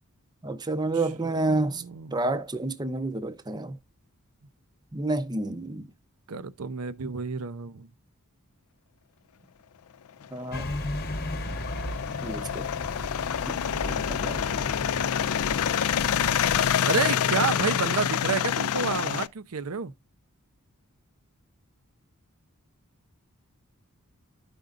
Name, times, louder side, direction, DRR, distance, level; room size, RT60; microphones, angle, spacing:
voice 1, 0.4-1.8 2.1-3.7 4.9-5.9 10.3-10.6 12.2-12.6 13.5-13.6 13.8-14.4, right 2 dB, 20° right, 0.6 m, -29 dB
voice 2, 1.2-2.3 6.3-7.9 16.8-19.9, right 5 dB, 75° right, 0.6 m, -30 dB
sound 1, 10.2-19.3, left 9 dB, 70° left, 0.4 m, -27 dB
sound 2, 10.5-16.8, left 1 dB, 45° left, 1.0 m, -35 dB
13.0 x 5.2 x 2.5 m
head